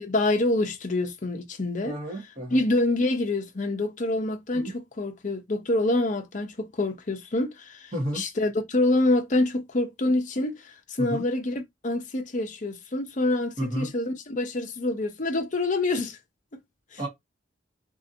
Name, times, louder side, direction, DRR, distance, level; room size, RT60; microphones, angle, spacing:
voice 1, 0.0-2.0 2.5-16.2 16.9-17.0, left 2 dB, 40° left, 0.7 m, -26 dB
voice 2, 1.8-2.6 4.5-4.7 7.9-8.2 11.1-11.2 13.6-13.9 17.0-17.1, right 1 dB, 40° right, 1.6 m, -31 dB
3.4 x 2.7 x 2.7 m
head